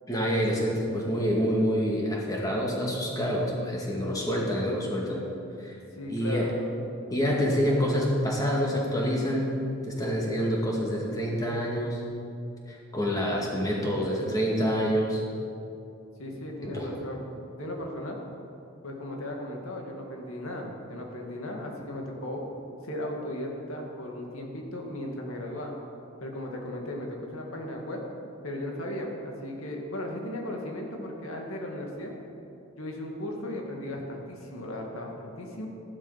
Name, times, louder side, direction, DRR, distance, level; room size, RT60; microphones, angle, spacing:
voice 1, 0.1-5.2 5.6-5.7 6.1-6.5 7.1-9.6 9.9-12.0 12.7-15.2 16.6-16.9, equal, 15° left, -2 dB, 2.1 m, -27 dB
voice 2, 5.9-6.6 7.0-7.6 16.2-18.2 18.8-22.5 22.8-25.7 26.2-28.0 28.4-32.1 32.8-35.7, left 1 dB, 85° left, 0 dB, 2.2 m, -36 dB
13.5 x 11.5 x 5.7 m, 2.7 s
head